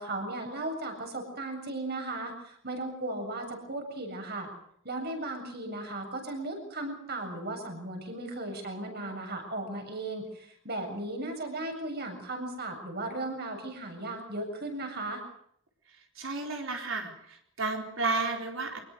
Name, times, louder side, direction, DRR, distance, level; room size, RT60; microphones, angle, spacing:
voice 1, 0.0-4.5 4.8-15.2, right 2 dB, 50° right, 4 dB, 7.6 m, -36 dB
voice 2, 16.2-18.8, right 3 dB, 75° right, 3 dB, 4.2 m, -32 dB
24.5 x 20.5 x 6.6 m, 0.70 s
head